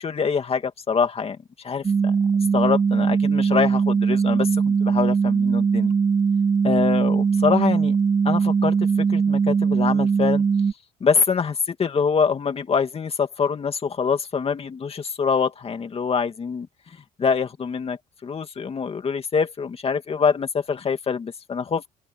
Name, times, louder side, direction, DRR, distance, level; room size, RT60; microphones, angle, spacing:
voice 1, 0.0-1.4 1.6-1.8 2.5-5.9 6.6-8.0 8.2-10.4 11.0-16.7 17.2-21.8, left 6 dB, 35° left, 2.4 m, -24 dB
sound 1, 1.8-10.7, right 5 dB, 25° right, 0.7 m, -20 dB
open air
cardioid pair, 110°, 17 cm